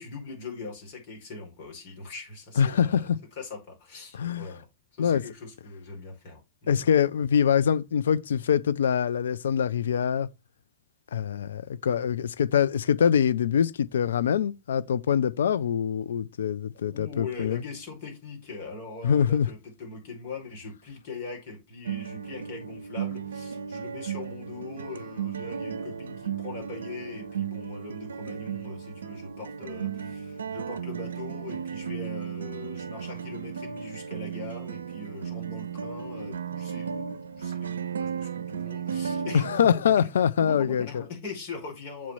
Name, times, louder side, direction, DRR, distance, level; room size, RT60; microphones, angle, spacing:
voice 1, 0.0-3.1 3.4-4.6 4.9-6.8 16.8-39.6 40.0-40.1 40.4-42.1, left 3 dB, 60° left, 4.8 m, -41 dB
voice 2, 2.6-3.2 4.1-4.5 5.0-5.2 6.7-10.3 11.1-17.6 19.0-19.5 39.3-41.0, left 8 dB, 75° left, 0.5 m, -24 dB
sound 1, 21.9-39.7, right 7 dB, 80° right, 0.4 m, -35 dB
7.4 x 4.3 x 5.4 m
hypercardioid pair, 90°, 0 cm